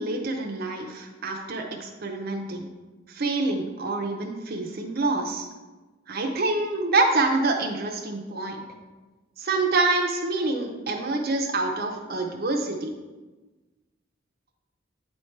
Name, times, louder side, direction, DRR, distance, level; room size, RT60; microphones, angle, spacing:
voice 1, 0.0-2.7 3.1-5.5 6.1-8.6 9.4-12.9, right 3 dB, 55° right, 2 dB, 0.7 m, -26 dB
9.3 x 3.2 x 4.5 m, 1.2 s
head